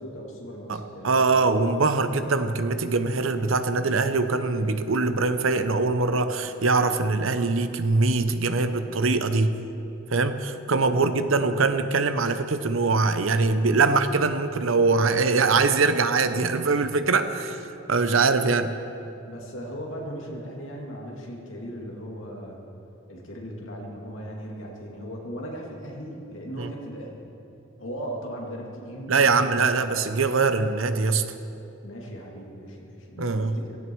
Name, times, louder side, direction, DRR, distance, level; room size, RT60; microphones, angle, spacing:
voice 1, 0.0-1.3 19.3-22.6 23.1-27.2 27.8-29.6 31.8-33.8, equal, 75° left, -1 dB, 2.6 m, -38 dB
voice 2, 0.7-9.5 10.1-17.6 17.9-18.7 26.6-26.7 29.1-31.2 33.2-33.6, right 3 dB, 80° right, 9 dB, 0.8 m, -23 dB
16.5 x 15.5 x 4.7 m, 2.8 s
head